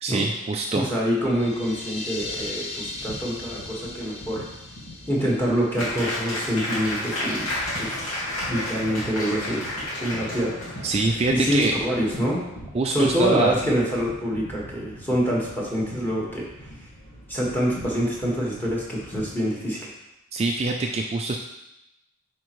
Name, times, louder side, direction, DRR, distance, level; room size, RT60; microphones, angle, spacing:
voice 1, 0.0-0.9 10.8-11.7 12.7-13.5 20.3-21.4, right 3 dB, 30° right, 2 dB, 0.4 m, -24 dB
voice 2, 0.7-4.4 5.1-7.5 7.8-8.0 8.4-9.6 10.0-10.6 11.3-12.4 12.9-16.7 17.3-19.9, equal, 10° left, -5 dB, 1.6 m, -25 dB
sound 1, 1.2-19.3, equal, 70° left, 2.1 m, -43 dB
sound 2, 1.2-6.8, left 2 dB, 30° left, 0.8 m, -38 dB
Applause, 5.8-12.2, left 1 dB, 85° left, 2.4 m, -31 dB
9.4 x 4.5 x 3.1 m, 0.91 s
head